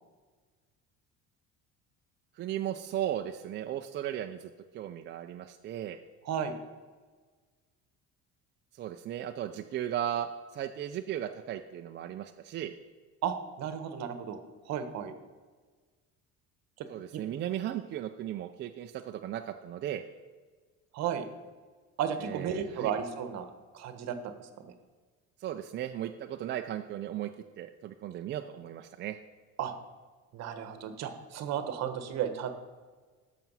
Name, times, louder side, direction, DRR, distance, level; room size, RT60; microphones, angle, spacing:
voice 1, 2.3-6.0 8.8-12.7 16.9-20.0 22.2-22.9 25.4-27.3 27.6-29.2, right 11 dB, 35° right, 6 dB, 0.4 m, -36 dB
voice 2, 6.2-6.6 13.2-14.4 14.6-15.1 17.1-17.2 20.9-21.2 22.0-23.5 23.7-24.7 29.6-29.7 30.3-32.5, right 8 dB, 55° right, 9 dB, 1.2 m, -34 dB
13.5 x 5.9 x 5.5 m, 1.4 s
cardioid pair, 165°, 32 cm